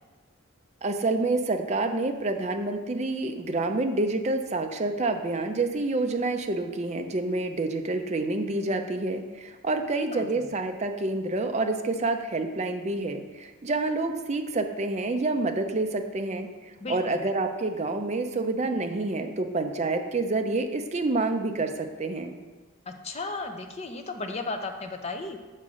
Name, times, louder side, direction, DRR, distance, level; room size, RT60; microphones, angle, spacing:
voice 1, 0.8-16.5 16.9-22.3, right 2 dB, 30° right, 5 dB, 0.6 m, -28 dB
voice 2, 16.8-17.2 22.9-25.4, left 3 dB, 30° left, 6 dB, 0.6 m, -35 dB
7.4 x 3.7 x 6.3 m, 1.3 s
head